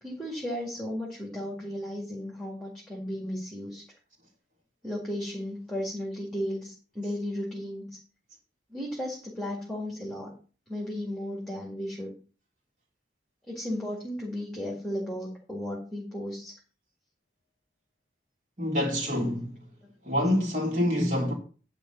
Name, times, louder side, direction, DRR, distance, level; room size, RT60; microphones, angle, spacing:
voice 1, 0.0-3.8 4.8-8.0 8.7-10.3 10.7-12.1 13.5-16.6 19.8-19.9, equal, ahead, 2.0 m, -35 dB
voice 2, 18.6-19.5 20.0-21.3, left 1 dB, 45° right, 3.4 m, -26 dB
10.5 x 4.1 x 7.1 m
head